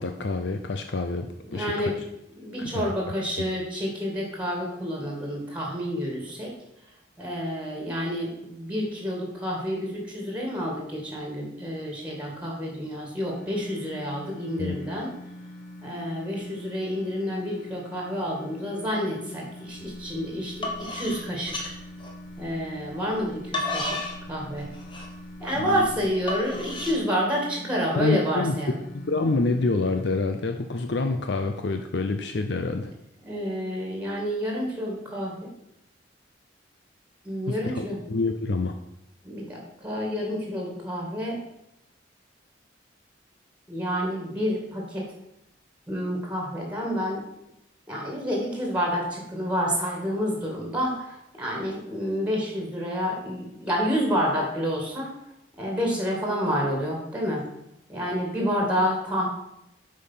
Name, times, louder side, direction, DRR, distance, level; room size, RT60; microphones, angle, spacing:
voice 1, 0.0-1.9 2.6-2.9 14.6-14.8 25.6-25.9 28.0-28.6 28.9-32.9 37.5-38.7, left 3 dB, 65° left, 6 dB, 0.6 m, -27 dB
voice 2, 1.5-2.0 2.3-6.5 7.2-15.1 15.8-21.7 22.4-24.0 24.3-24.7 25.4-28.8 33.2-35.5 37.2-38.0 39.2-41.4 43.7-45.1 45.9-47.2 47.9-55.1 55.6-57.4 57.9-59.3, equal, 5° right, -1 dB, 2.2 m, -29 dB
sound 1, 13.3-30.1, left 1 dB, 40° left, 2.2 m, -43 dB
sound 2, 19.8-20.1 20.4-22.5 23.1-27.0, left 2 dB, 25° left, 1.3 m, -33 dB
8.2 x 5.4 x 5.7 m, 0.82 s
head